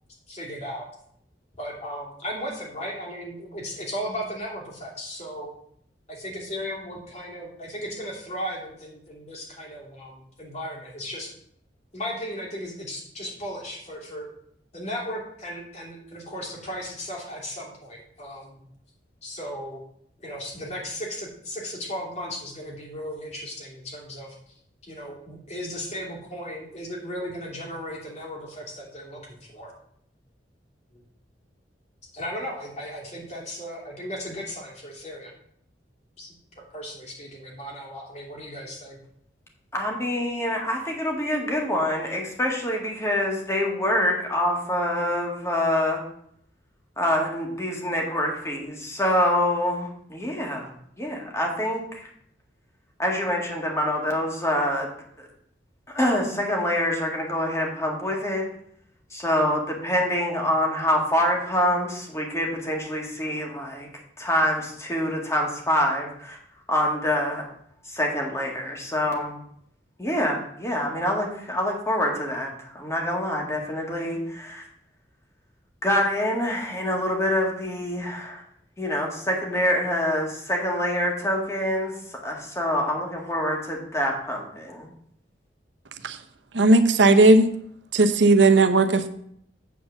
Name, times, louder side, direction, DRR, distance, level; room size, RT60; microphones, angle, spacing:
voice 1, 0.3-0.9 1.6-5.5 6.1-11.3 11.9-14.3 14.7-18.6 19.2-19.8 20.2-24.4 24.8-29.7 30.9-31.0 32.1-35.3 36.2-39.0, equal, 40° left, -2 dB, 2.7 m, -36 dB
voice 2, 39.7-46.0 47.0-52.1 53.0-54.9 55.2-55.3 55.9-58.5 59.1-63.9 64.2-66.4 66.7-67.5 67.9-69.4 70.0-74.6 75.8-78.4 78.8-82.0 82.2-84.9, left 1 dB, 15° left, 0 dB, 1.8 m, -26 dB
voice 3, 86.5-87.5 87.9-89.1, right 2 dB, 85° right, 9 dB, 0.8 m, -16 dB
8.3 x 4.4 x 7.0 m, 0.69 s
head